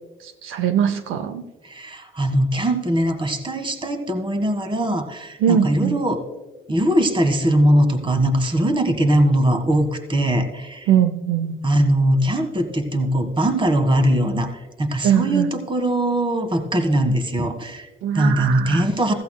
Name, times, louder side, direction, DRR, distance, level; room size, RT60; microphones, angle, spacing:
voice 1, 0.2-1.4 5.4-6.0 10.9-11.6 15.0-15.5 18.0-18.8, right 9 dB, 85° right, 10 dB, 0.6 m, -21 dB
voice 2, 1.6-6.2 6.7-10.9 11.6-14.5 14.8-17.9 18.1-19.1, right 1 dB, 25° right, 7 dB, 1.6 m, -20 dB
15.5 x 14.5 x 2.2 m, 1.2 s
cardioid pair, 90°, 20 cm